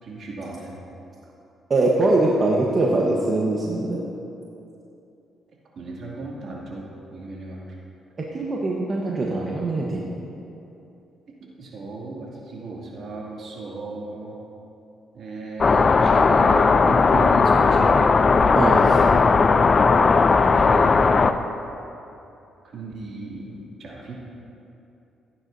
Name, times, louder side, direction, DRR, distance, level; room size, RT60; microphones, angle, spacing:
voice 1, 0.0-0.8 5.8-7.6 11.4-14.4 15.1-18.3 20.4-21.4 22.7-24.1, right 3 dB, 60° right, -4 dB, 2.5 m, -35 dB
voice 2, 1.7-4.0 8.3-10.0 18.5-19.1 20.3-20.4, right 2 dB, 40° right, -3 dB, 1.1 m, -22 dB
sound 1, 15.6-21.3, left 4 dB, 35° left, 0.4 m, -17 dB
16.0 x 9.5 x 2.7 m, 2.8 s
cardioid pair, 90°, 0 cm